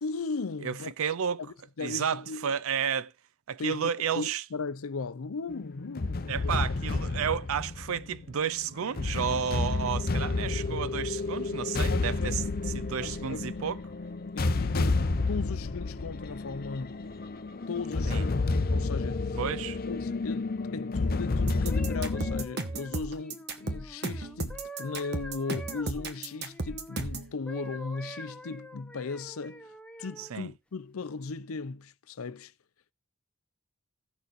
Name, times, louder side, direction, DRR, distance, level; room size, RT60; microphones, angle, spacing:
voice 1, 0.0-0.9 1.4-2.5 3.6-6.9 10.5-11.0 11.9-12.3 13.0-13.5 14.3-16.9 17.7-19.4 19.9-32.5, left 4 dB, 85° left, 0.6 m, -37 dB
voice 2, 0.6-1.4 1.8-3.1 3.5-4.4 6.3-12.4 12.7-13.8 18.1-18.2 19.4-19.8 30.2-30.5, right 7 dB, 85° right, 0.5 m, -32 dB
sound 1, 5.5-22.5, left 3 dB, 45° left, 0.6 m, -30 dB
sound 2, 21.5-27.3, right 3 dB, 50° right, 1.2 m, -35 dB
sound 3, 21.7-27.0 27.5-30.3 31.0-31.3, equal, 5° left, 0.7 m, -45 dB
16.5 x 6.6 x 2.5 m
head